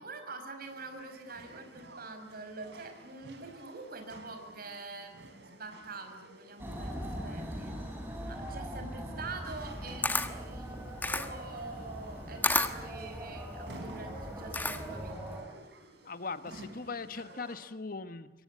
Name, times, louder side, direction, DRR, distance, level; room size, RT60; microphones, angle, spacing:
voice 1, 0.0-7.8 8.2-15.4, right 3 dB, 55° right, 6 dB, 5.5 m, -45 dB
sound 1, 0.6-17.6, right 1 dB, 70° right, 4.6 m, -53 dB
sound 2, 6.6-15.4, equal, 10° right, 6.0 m, -41 dB
Camera, 9.6-15.1, left 2 dB, 10° left, 1.4 m, -33 dB
voice 2, 16.0-18.3, left 4 dB, 50° left, 12 dB, 1.2 m, -40 dB
26.0 x 23.0 x 9.9 m, 0.98 s
head